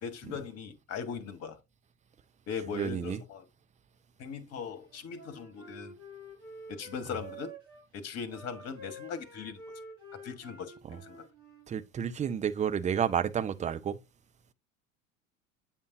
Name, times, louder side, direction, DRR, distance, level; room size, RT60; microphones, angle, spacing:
voice 1, 0.0-1.6 2.5-3.4 4.2-5.9 6.7-7.5 7.9-9.6 10.2-11.2, left 6 dB, 40° left, 1.4 m, -39 dB
voice 2, 2.7-3.2 10.8-11.0 11.7-14.0, right 8 dB, 20° right, 0.6 m, -31 dB
Wind instrument woodwind instrument, 4.9-7.8 8.3-11.7, right 1 dB, 65° right, 4.9 m, -49 dB
8.9 x 5.3 x 2.6 m
figure-of-eight pair, 75°, 40 cm